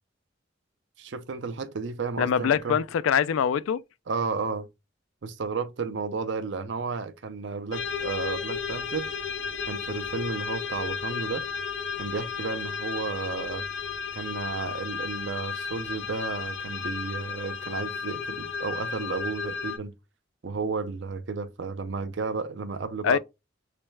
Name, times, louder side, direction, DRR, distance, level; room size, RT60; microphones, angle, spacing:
voice 1, 1.0-2.8 4.1-4.7 5.2-9.1 9.7-11.5 12.0-13.7 14.1-19.9 20.4-23.2, right 4 dB, 65° right, 0.5 m, -32 dB
voice 2, 2.2-3.8 23.0-23.2, left 8 dB, 85° left, 0.3 m, -23 dB
sound 1, 7.7-19.8, left 6 dB, 70° left, 0.8 m, -34 dB
3.3 x 3.1 x 3.2 m
head